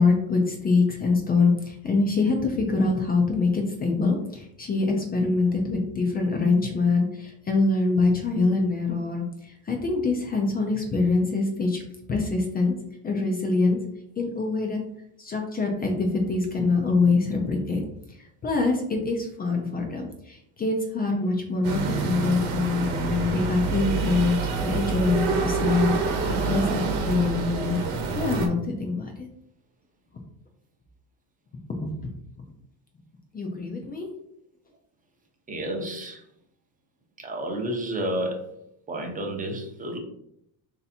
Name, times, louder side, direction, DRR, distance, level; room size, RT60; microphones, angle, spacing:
voice 1, 0.0-11.8 12.1-12.7 13.0-13.8 14.2-14.8 15.2-17.9 18.4-24.4 24.6-27.8 28.1-29.3 31.8-32.1 33.3-34.1, left 3 dB, 20° left, 2 dB, 0.4 m, -24 dB
sound 1, 21.6-28.5, right 4 dB, 80° right, 1.0 m, -27 dB
voice 2, 35.5-36.2 37.2-38.4 38.9-40.0, right 1 dB, 20° right, 2 dB, 0.6 m, -30 dB
3.2 x 2.8 x 4.1 m, 0.75 s
cardioid pair, 150°, 47 cm